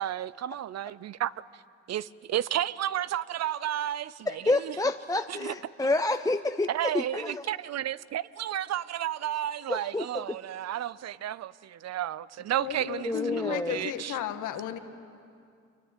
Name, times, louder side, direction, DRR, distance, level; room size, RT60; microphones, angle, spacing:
voice 1, 0.0-1.3 1.9-4.7 5.3-5.5 6.7-14.1, right 12 dB, 60° right, 0.7 m, -32 dB
voice 2, 4.3-7.5 9.7-10.4 13.0-13.8, left 2 dB, 10° left, 0.6 m, -29 dB
voice 3, 12.6-14.8, left 11 dB, 90° left, 1.7 m, -34 dB
25.5 x 22.5 x 9.1 m
cardioid pair, 90°, 30 cm